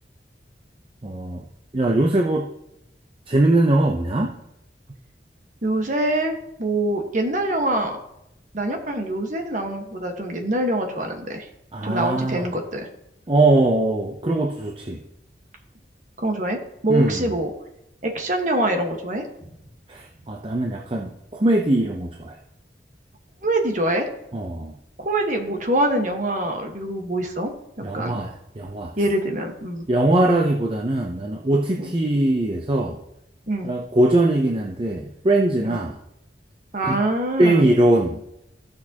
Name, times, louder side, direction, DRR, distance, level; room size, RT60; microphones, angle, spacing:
voice 1, 1.0-1.4 1.7-2.5 3.3-4.4 11.7-12.5 13.3-15.0 16.9-17.4 19.9-22.4 24.3-24.8 27.8-28.9 29.9-33.0 33.6-36.0 36.8-37.0 37.4-38.2, right 1 dB, 30° right, 1 dB, 0.6 m, -21 dB
voice 2, 5.6-8.0 8.5-11.5 11.8-12.9 16.2-16.6 16.8-17.5 18.0-19.2 23.4-24.1 25.0-27.5 27.9-28.2 29.0-29.8 31.8-31.9 33.5-33.7 35.6-35.8 36.7-37.7, right 1 dB, 45° right, 3 dB, 1.4 m, -24 dB
15.5 x 6.2 x 2.9 m, 0.83 s
head